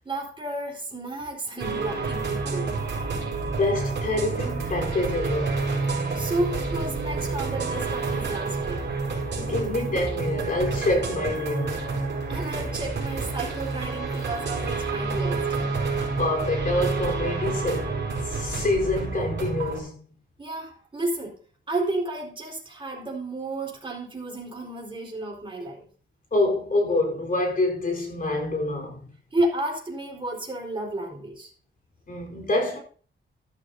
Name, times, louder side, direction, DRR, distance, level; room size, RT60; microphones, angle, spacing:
voice 1, 0.0-2.7 6.1-8.8 12.3-15.5 20.4-21.4 21.7-25.9 29.3-31.5, right 1 dB, 25° right, 4.5 m, -31 dB
technology ambience, 1.6-19.8, right 4 dB, 60° right, 5.6 m, -29 dB
voice 2, 3.3-5.5 9.4-12.1 16.2-18.0 18.3-20.0 26.3-29.1 32.1-32.8, left 2 dB, 45° left, 4.2 m, -26 dB
13.5 x 13.0 x 2.8 m
wide cardioid pair, 145°, 21 cm